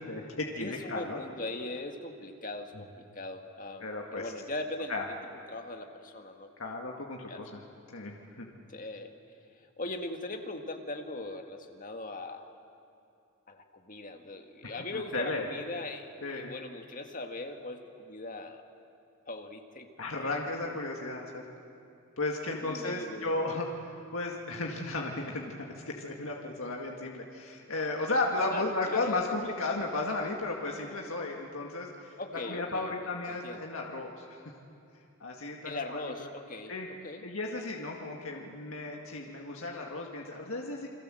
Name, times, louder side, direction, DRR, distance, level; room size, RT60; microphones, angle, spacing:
voice 1, 0.0-1.2 2.7-2.8 3.8-4.3 4.9-5.0 6.6-7.6 7.9-8.5 14.6-15.5 16.2-16.5 20.0-21.5 22.2-34.4 35.2-36.3 36.7-36.9 37.2-40.9, left 2 dB, 65° left, 0 dB, 2.0 m, -34 dB
voice 2, 0.6-4.9 5.5-6.8 7.3-7.4 8.7-9.1 9.8-12.5 13.5-18.6 19.3-19.9 20.2-20.3 22.6-23.4 28.5-29.3 32.2-32.9 33.3-33.6 35.6-36.7 37.0-37.3, left 2 dB, 40° left, 5 dB, 1.8 m, -40 dB
29.5 x 22.0 x 7.7 m, 2.6 s
head